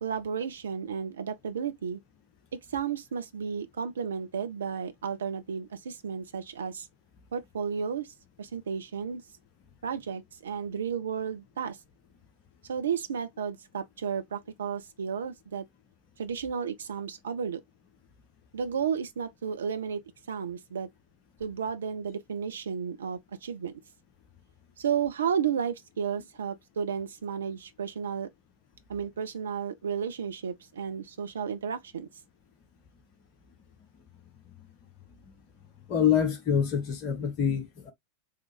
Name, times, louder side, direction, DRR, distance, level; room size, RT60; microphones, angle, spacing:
voice 1, 0.0-2.0 2.5-6.9 7.3-9.2 9.8-11.8 12.7-15.6 16.2-17.6 18.5-20.0 20.3-20.9 21.4-23.7 24.8-28.3 28.9-32.1, right 7 dB, 65° right, 0.6 m, -33 dB
voice 2, 35.9-37.9, left 8 dB, 35° left, 0.9 m, -26 dB
3.8 x 3.1 x 3.3 m
figure-of-eight pair, 90°, 0 cm